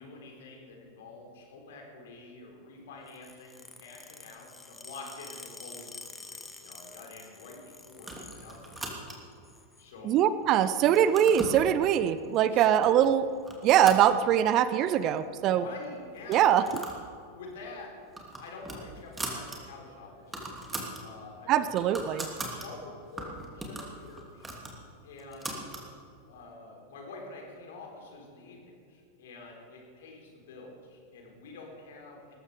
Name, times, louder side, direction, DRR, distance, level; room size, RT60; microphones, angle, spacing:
voice 1, 0.0-9.0 9.8-10.2 12.5-12.6 15.5-16.8 17.3-17.9 18.4-20.6 21.0-21.7 22.5-24.5 25.0-25.6 26.2-32.4, left 3 dB, 55° left, 1 dB, 4.3 m, -47 dB
sound 1, 3.1-9.0 9.3-9.9 10.6-11.1 12.2-12.4 13.4-13.7 13.9-14.1 14.3-14.4 14.7-15.2 15.8-15.9 16.9-17.0, left 3 dB, 10° left, 1.5 m, -49 dB
sound 2, 8.0-9.4 10.0-10.5 10.8-11.6 12.3-12.4 12.8-13.1 13.4-14.7 15.0-15.1 15.3-15.4 16.2-17.0 17.4-17.5 17.9-19.6 19.9-20.0 20.2-21.0 21.4-22.7 23.2-25.9, right 2 dB, 10° right, 2.8 m, -40 dB
voice 2, 10.0-13.3 13.6-15.6 16.3-16.6 21.5-22.3, right 10 dB, 35° right, 14 dB, 0.7 m, -23 dB
19.5 x 14.0 x 5.1 m, 2.4 s
figure-of-eight pair, 90°, 0 cm